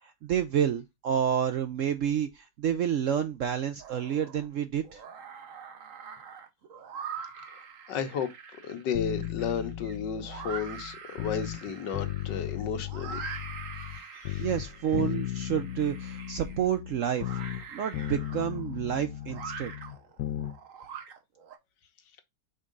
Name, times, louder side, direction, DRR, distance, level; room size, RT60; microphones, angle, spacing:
voice 1, 0.0-5.0 14.4-17.4 17.7-19.7, right 9 dB, 70° right, 0.7 m, -29 dB
sound 1, 3.8-4.5 4.8-21.6, right 6 dB, 55° right, 1.2 m, -44 dB
voice 2, 7.5-8.3 8.6-13.2 13.9-14.4, left 7 dB, 90° left, 1.6 m, -33 dB
sound 2, 8.9-11.6 11.9-14.0 14.2-17.7 17.9-20.6 20.8-20.9, left 13 dB, 70° left, 1.0 m, -36 dB
5.3 x 3.6 x 5.2 m
omnidirectional pair, 1.9 m